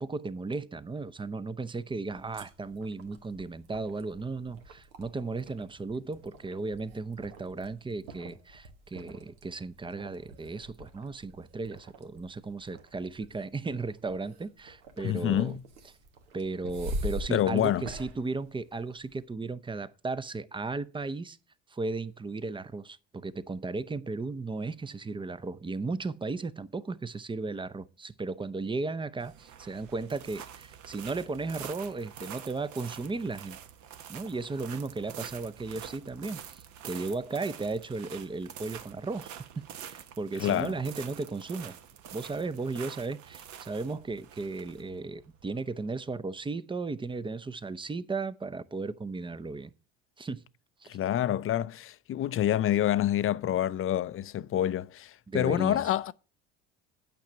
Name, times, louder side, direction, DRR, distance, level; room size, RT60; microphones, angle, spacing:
voice 1, 0.0-15.6 16.3-21.4 21.7-33.6 34.1-41.8 42.1-49.7 50.2-50.4 50.8-50.9 55.3-55.8, right 3 dB, 15° right, 0.6 m, -35 dB
sound 1, 2.0-19.2, equal, 80° right, 1.5 m, -44 dB
voice 2, 15.0-15.6 17.3-17.9 40.4-40.7 50.9-56.1, left 12 dB, 40° left, 0.5 m, -27 dB
sound 2, 29.2-46.1, right 9 dB, 55° right, 1.1 m, -46 dB
9.3 x 5.8 x 6.6 m
hypercardioid pair, 75°, 34 cm